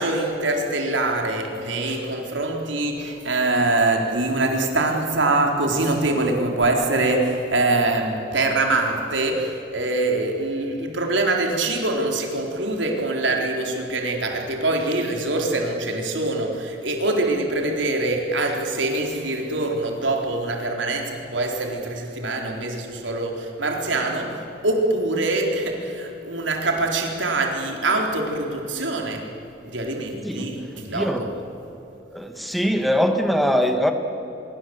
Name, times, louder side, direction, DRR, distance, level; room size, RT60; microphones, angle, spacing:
voice 1, 0.0-29.3 29.6-31.3, right 2 dB, 85° right, 2 dB, 4.0 m, -24 dB
voice 2, 30.9-31.3 32.1-33.9, equal, ahead, 6 dB, 1.5 m, -22 dB
25.0 x 22.5 x 8.0 m, 3.0 s
head